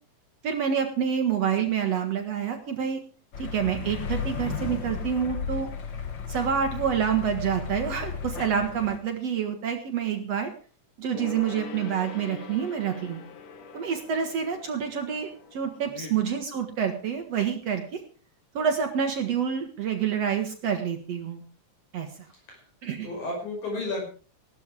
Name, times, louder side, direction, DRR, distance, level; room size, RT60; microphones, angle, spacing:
voice 1, 0.4-3.0 3.4-5.7 6.3-10.5 11.0-13.2 13.7-18.0 18.5-21.4 21.9-22.1 22.8-23.1, right 7 dB, 60° right, 5 dB, 2.5 m, -27 dB
sound 1, 3.3-9.0, left 6 dB, 45° left, 1.9 m, -34 dB
Gong, 11.1-17.0 17.3-17.4, left 6 dB, 65° left, 2.7 m, -44 dB
voice 2, 22.3-22.7 23.0-24.1, left 2 dB, 80° left, 0 dB, 7.0 m, -33 dB
16.5 x 13.0 x 4.9 m, 0.39 s
omnidirectional pair, 3.3 m